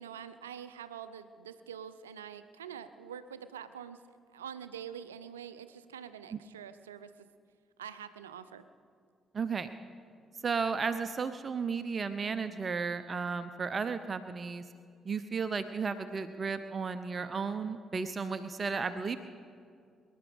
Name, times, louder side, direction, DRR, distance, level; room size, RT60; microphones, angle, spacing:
voice 1, 0.0-4.0 4.3-7.3 7.8-8.7, right 8 dB, 85° right, 13 dB, 0.5 m, -45 dB
voice 2, 9.3-9.7 10.4-14.6 15.0-19.2, right 5 dB, 40° right, 11 dB, 0.7 m, -34 dB
25.0 x 11.0 x 5.1 m, 2.2 s
figure-of-eight pair, 40°, 0 cm